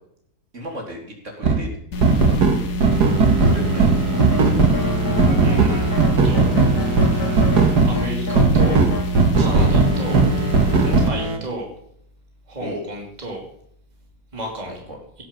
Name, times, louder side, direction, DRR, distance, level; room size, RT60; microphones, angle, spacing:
voice 1, 0.5-1.7 2.0-2.4 3.4-4.0 4.4-5.0 9.5-9.7 10.8-11.0 12.6-12.8 14.7-15.0, equal, 50° right, 1 dB, 3.7 m, -35 dB
sound 1, 1.4-1.6 2.0-7.9 8.4-11.4, right 4 dB, 90° right, 2.3 m, -17 dB
sound 2, 1.9-11.1, left 1 dB, 80° left, 2.2 m, -27 dB
sound 3, 4.1-9.1, left 2 dB, 55° left, 3.5 m, -29 dB
voice 2, 5.4-6.0 6.2-6.5 7.9-8.8 9.1-10.2 11.0-11.7 12.5-13.5 14.3-14.8, right 1 dB, 25° right, 0 dB, 2.9 m, -32 dB
17.5 x 7.9 x 7.4 m, 0.69 s
omnidirectional pair, 1.7 m